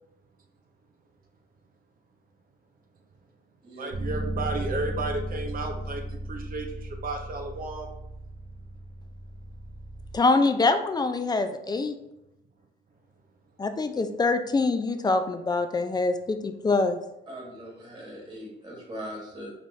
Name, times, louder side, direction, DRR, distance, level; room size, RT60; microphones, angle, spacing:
voice 1, 3.8-7.9, right 3 dB, 45° right, 2 dB, 0.7 m, -33 dB
Bass guitar, 3.9-10.2, right 1 dB, 85° right, 1.1 m, -35 dB
voice 2, 10.1-12.0 13.6-17.0, left 3 dB, 20° left, 8 dB, 0.4 m, -24 dB
voice 3, 17.3-19.5, equal, 20° right, -2 dB, 1.4 m, -40 dB
3.8 x 3.2 x 3.2 m, 0.84 s
cardioid pair, 90°, 20 cm